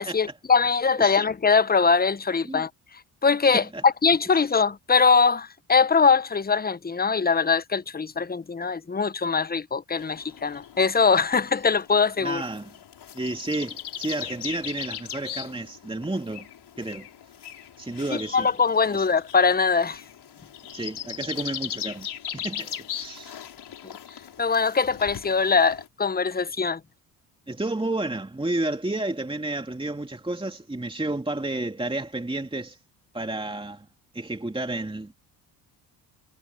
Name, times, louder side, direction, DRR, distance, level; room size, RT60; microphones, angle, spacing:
voice 1, 0.0-2.7 3.2-12.4 18.3-20.0 23.8-23.9 24.4-26.8, left 5 dB, 20° left, 1.1 m, -22 dB
sound 1, 10.0-25.9, left 9 dB, 60° left, 5.4 m, -39 dB
voice 2, 12.2-12.7 13.1-16.5 16.8-17.1 17.8-18.5 18.9-19.1 20.7-22.1 22.3-23.4 27.5-32.8 33.1-33.9 34.1-35.1, right 2 dB, 10° right, 2.8 m, -31 dB
supercardioid pair, 60°, 45 cm